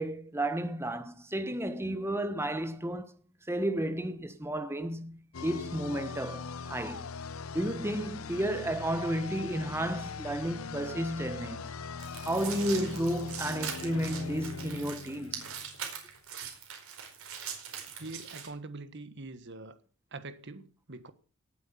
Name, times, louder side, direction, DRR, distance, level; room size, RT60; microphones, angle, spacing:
voice 1, 0.0-3.2 3.5-7.1 7.5-11.7 12.2-15.5, right 1 dB, 10° right, 1.1 m, -32 dB
sound 1, 5.3-16.0, left 5 dB, 80° left, 0.7 m, -41 dB
sound 2, 12.0-18.5, right 8 dB, 85° right, 4.8 m, -41 dB
voice 2, 18.0-19.8 20.1-21.1, right 2 dB, 55° right, 1.6 m, -44 dB
18.0 x 8.3 x 7.3 m
head